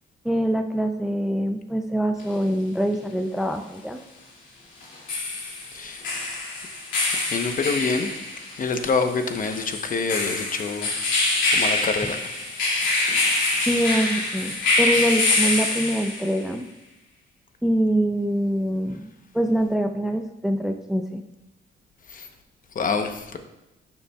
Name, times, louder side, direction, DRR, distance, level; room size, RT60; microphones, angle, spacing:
voice 1, 0.2-4.0 13.7-16.7 17.6-21.2, right 1 dB, ahead, 6 dB, 0.4 m, -24 dB
sound 1, 2.2-2.3 4.8-16.4, left 2 dB, 70° left, 2.5 m, -25 dB
voice 2, 5.7-6.0 7.3-8.1 8.6-10.9 11.5-12.2 22.1-22.3 22.7-23.4, left 4 dB, 45° left, 7 dB, 0.9 m, -26 dB
12.0 x 7.1 x 2.3 m, 0.96 s
cardioid pair, 90°, 20 cm